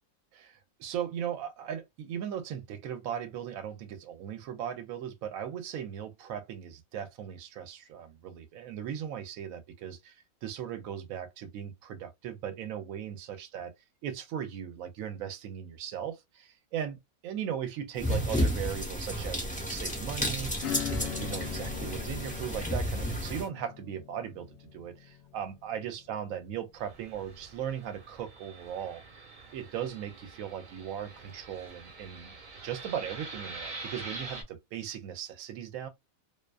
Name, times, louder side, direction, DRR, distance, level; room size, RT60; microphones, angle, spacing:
voice 1, 0.3-13.7 14.0-17.0 17.2-24.5 24.7-29.0 29.5-32.3 32.6-35.9, right 9 dB, 75° right, 1.0 m, -38 dB
sound 1, 18.0-23.5, equal, 10° left, 0.6 m, -32 dB
Acoustic guitar / Strum, 20.6-26.8, left 11 dB, 60° left, 0.7 m, -41 dB
Fixed-wing aircraft airplane, 26.8-34.4, right 3 dB, 45° right, 0.7 m, -45 dB
2.5 x 2.2 x 2.3 m
omnidirectional pair, 1.5 m